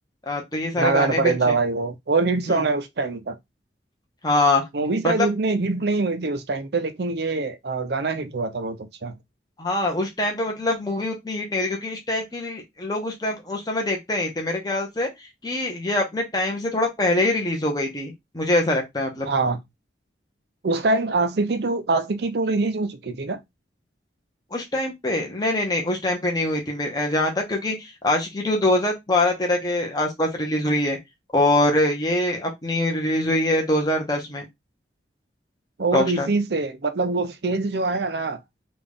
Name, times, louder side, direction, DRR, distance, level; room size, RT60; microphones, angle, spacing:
voice 1, 0.3-1.5 2.5-2.7 4.2-4.6 5.0-5.3 9.6-15.1 15.4-19.3 24.5-31.0 31.3-34.4 35.9-36.3, left 1 dB, 20° left, 1.0 m, -24 dB
voice 2, 0.8-3.4 4.7-9.1 19.3-19.6 20.6-23.4 35.8-38.4, right 3 dB, 60° right, 0.6 m, -24 dB
3.9 x 2.4 x 3.4 m
head